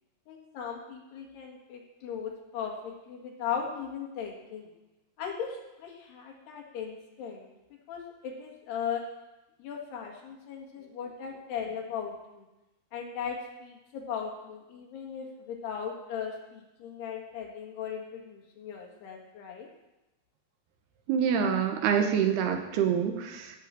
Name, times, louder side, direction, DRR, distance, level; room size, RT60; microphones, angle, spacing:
voice 1, 0.3-4.7 5.2-7.5 7.9-9.0 9.6-12.5 12.9-19.7, left 7 dB, 85° left, 1 dB, 4.0 m, -38 dB
voice 2, 21.1-23.6, right 7 dB, 80° right, 5 dB, 3.2 m, -26 dB
16.5 x 5.9 x 7.6 m, 1.0 s
omnidirectional pair, 4.6 m